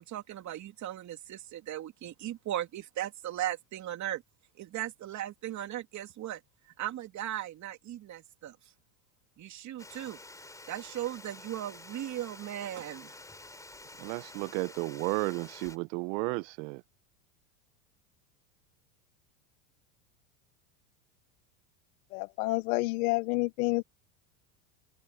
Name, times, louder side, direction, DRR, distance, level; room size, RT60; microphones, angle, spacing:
voice 1, 0.0-4.2 4.6-6.4 6.8-8.6 9.4-10.2 10.7-13.1, right 12 dB, 35° right, 3.0 m, -37 dB
Water, 9.8-15.8, left 2 dB, 5° left, 3.8 m, -49 dB
voice 2, 14.0-16.8, right 26 dB, 60° right, 0.9 m, -33 dB
voice 3, 22.1-23.8, left 23 dB, 65° left, 0.8 m, -29 dB
supercardioid pair, 125°, 46 cm